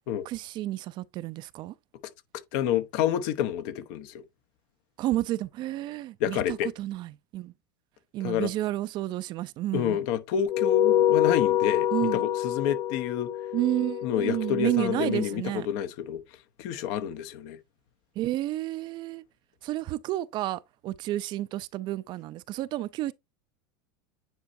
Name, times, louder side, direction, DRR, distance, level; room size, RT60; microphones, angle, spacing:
voice 1, 0.3-1.7 5.0-7.5 8.1-10.0 11.9-12.2 13.5-15.7 18.2-19.2 19.6-23.1, right 15 dB, 45° right, 0.4 m, -31 dB
voice 2, 2.5-4.2 6.2-6.7 8.2-8.5 9.7-13.3 14.0-16.2 16.6-17.6, left 9 dB, 60° left, 0.9 m, -29 dB
sound 1, 10.5-15.3, left 11 dB, 40° left, 0.6 m, -26 dB
9.3 x 4.4 x 2.6 m
supercardioid pair, 120°, 11 cm